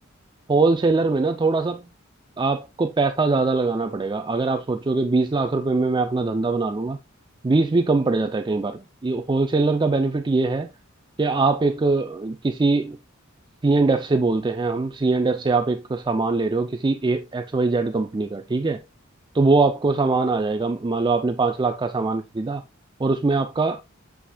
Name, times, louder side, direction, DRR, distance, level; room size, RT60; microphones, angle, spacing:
voice 1, 0.5-1.8 2.4-7.0 7.4-10.7 11.2-13.0 13.6-18.8 19.3-22.6 23.0-23.8, right 3 dB, 20° right, 0.4 m, -22 dB
8.5 x 5.0 x 2.3 m
head